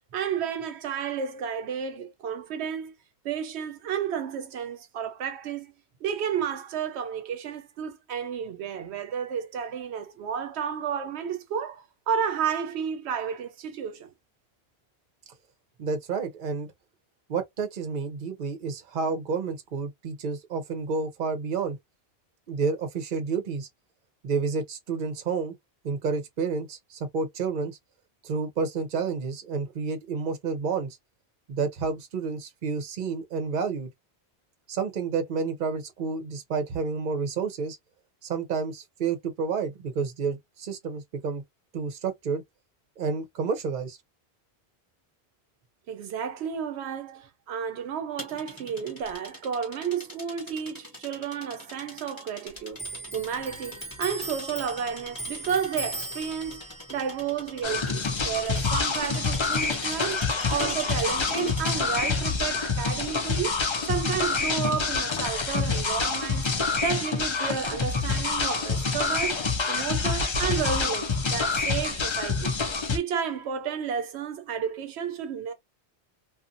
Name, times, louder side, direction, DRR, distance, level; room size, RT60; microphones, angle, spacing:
voice 1, 0.1-2.9 3.2-5.7 6.0-14.1 45.9-52.9 53.1-56.6 56.9-63.6 63.8-66.5 66.8-72.5 72.9-75.5, right 7 dB, 85° right, 0.8 m, -32 dB
voice 2, 15.8-16.7 17.3-21.8 22.5-23.7 24.2-25.5 25.8-27.8 28.2-30.9 31.5-33.9 34.7-37.8 38.2-41.4 41.7-42.4 43.0-44.0, right 5 dB, 55° right, 0.8 m, -30 dB
sound 1, 48.2-62.0, left 1 dB, 20° left, 1.2 m, -43 dB
Clock, 52.7-59.8 60.1-61.4 61.7-62.5, right 1 dB, 5° right, 1.2 m, -40 dB
sound 2, 57.6-73.0, left 4 dB, 40° left, 0.4 m, -27 dB
2.5 x 2.4 x 2.5 m
omnidirectional pair, 1.1 m